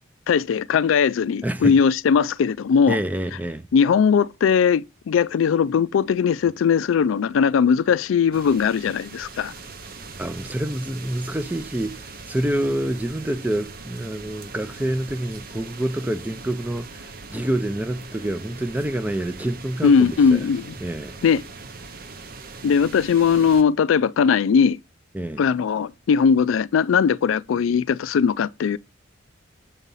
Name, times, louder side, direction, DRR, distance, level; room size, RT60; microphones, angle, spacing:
voice 1, 0.3-3.0 3.7-9.5 19.8-20.7 21.2-21.4 22.6-24.8 25.4-28.8, left 6 dB, 85° left, 0.3 m, -19 dB
voice 2, 1.4-1.8 2.9-3.7 10.2-20.4 20.8-21.2 25.1-25.4, right 1 dB, 10° right, 0.5 m, -27 dB
sound 1, 8.3-23.6, right 4 dB, 50° right, 0.9 m, -41 dB
7.2 x 4.0 x 5.5 m
head